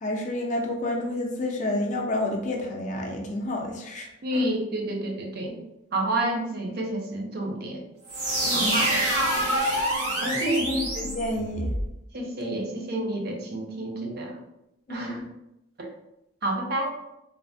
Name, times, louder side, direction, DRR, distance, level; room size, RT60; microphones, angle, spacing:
voice 1, 0.0-4.4 8.4-8.9 10.5-11.7 14.9-15.2, left 1 dB, 35° left, 1 dB, 0.4 m, -30 dB
voice 2, 4.2-5.6 5.9-7.8 8.5-9.0 9.4-9.5 10.2-10.7 12.1-14.4 14.9-15.2 15.8-15.9 16.4-17.0, right 1 dB, 50° right, 1 dB, 0.5 m, -29 dB
sound 1, 8.1-11.9, right 1 dB, 85° right, 1.0 m, -26 dB
3.2 x 2.0 x 2.5 m, 0.86 s
head